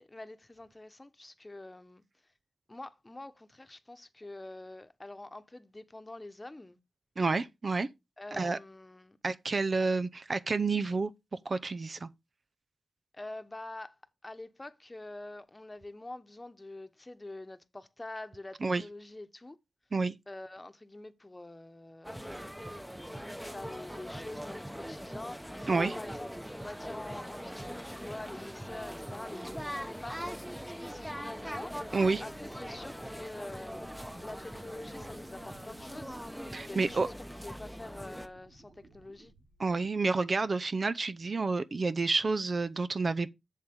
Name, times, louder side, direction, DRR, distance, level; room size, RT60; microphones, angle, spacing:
voice 1, 0.0-2.0 2.7-6.8 8.2-9.2 13.1-13.9 14.2-19.6 20.3-30.4 30.7-31.8 32.2-33.9 34.2-36.2 36.6-39.3, left 2 dB, 25° left, 1.1 m, -46 dB
voice 2, 7.2-7.9 8.3-8.6 9.2-11.1 11.5-12.1 18.6-18.8 19.9-20.1 25.7-25.9 31.9-32.2 36.5-37.1 39.6-43.3, right 3 dB, 50° right, 0.6 m, -29 dB
sound 1, 22.0-38.3, equal, 5° right, 1.0 m, -41 dB
sound 2, 31.3-37.1 37.5-40.0 42.5-42.6, right 2 dB, 75° right, 3.4 m, -59 dB
7.5 x 7.4 x 3.7 m
cardioid pair, 60°, 0 cm